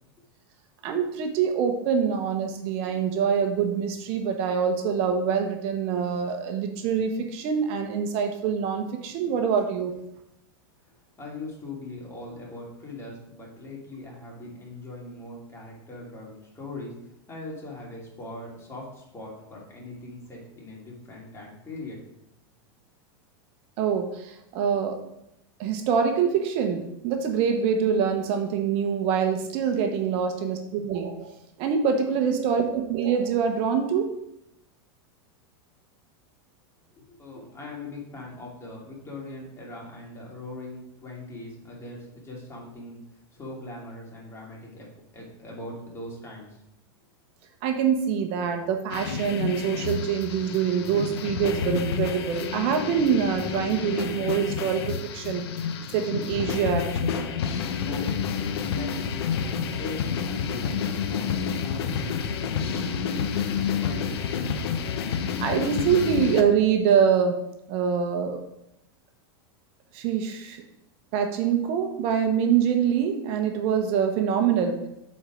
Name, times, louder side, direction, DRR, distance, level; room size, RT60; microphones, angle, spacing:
voice 1, 0.8-9.9 23.8-25.0 25.6-34.1 47.6-55.4 55.9-57.3 65.1-67.4 67.7-68.4 69.9-70.6 71.1-74.8, right 7 dB, 50° right, 4 dB, 1.0 m, -25 dB
voice 2, 11.2-22.0 36.9-43.0 43.3-44.9 45.1-46.6 57.8-64.0 64.3-64.7, left 2 dB, 20° left, -3 dB, 2.8 m, -41 dB
sound 1, 48.9-66.4, left 7 dB, 80° left, 0.8 m, -29 dB
8.4 x 4.4 x 5.0 m, 0.82 s
supercardioid pair, 125°, 13 cm